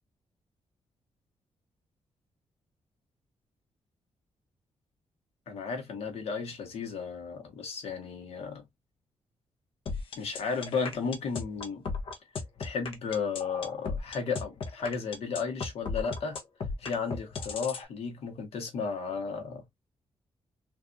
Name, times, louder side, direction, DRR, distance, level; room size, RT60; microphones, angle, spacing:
voice 1, 5.5-8.6 10.2-11.8 12.6-16.4 16.8-19.6, left 5 dB, 80° left, 1.2 m, -34 dB
sound 1, 9.9-17.8, left 4 dB, 60° left, 0.9 m, -35 dB
3.5 x 2.6 x 2.5 m
wide cardioid pair, 140°, 10 cm